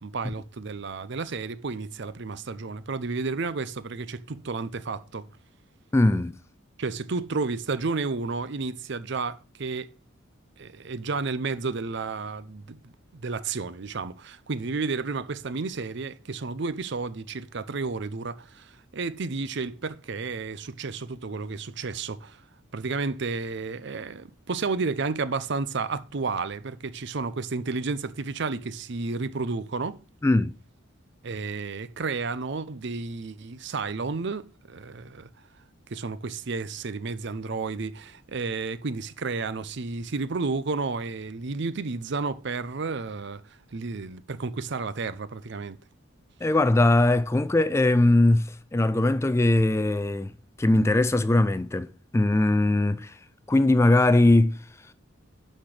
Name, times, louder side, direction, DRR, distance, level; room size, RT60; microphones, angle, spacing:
voice 1, 0.0-5.3 6.8-9.9 10.6-22.4 22.7-30.0 31.2-35.3 35.9-45.8, right 4 dB, 60° right, 0.6 m, -32 dB
voice 2, 5.9-6.3 30.2-30.5 46.4-53.1 53.5-54.6, left 2 dB, 15° left, 0.3 m, -21 dB
11.5 x 4.4 x 4.9 m
head